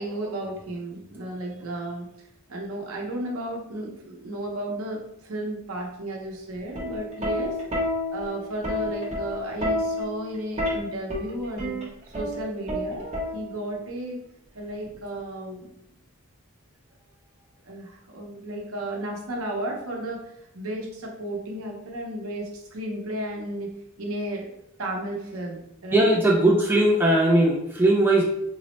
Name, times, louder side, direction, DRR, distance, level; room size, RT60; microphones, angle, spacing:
voice 1, 0.0-2.1 2.5-14.2 14.5-15.7 17.6-24.5 24.8-26.2, right 1 dB, 70° right, 0 dB, 0.8 m, -33 dB
Plucked string instrument, 6.6-13.8 14.9-15.2, left 1 dB, 30° right, 0.7 m, -30 dB
voice 2, 25.9-28.2, right 1 dB, 10° right, -2 dB, 0.4 m, -19 dB
3.9 x 2.0 x 3.0 m, 0.78 s
head